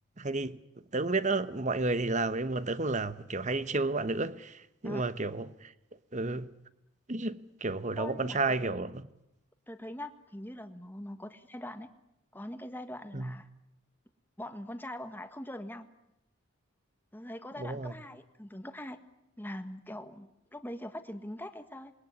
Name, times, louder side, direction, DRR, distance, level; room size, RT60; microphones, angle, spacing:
voice 1, 0.2-0.6 0.9-5.7 6.1-6.5 7.1-9.1 13.1-13.4 17.6-17.9, right 3 dB, 35° right, 1.0 m, -31 dB
voice 2, 8.0-8.8 9.7-11.9 12.3-13.5 14.4-15.9 17.1-19.0 19.4-21.9, left 1 dB, 10° left, 1.5 m, -42 dB
27.5 x 21.0 x 9.7 m
head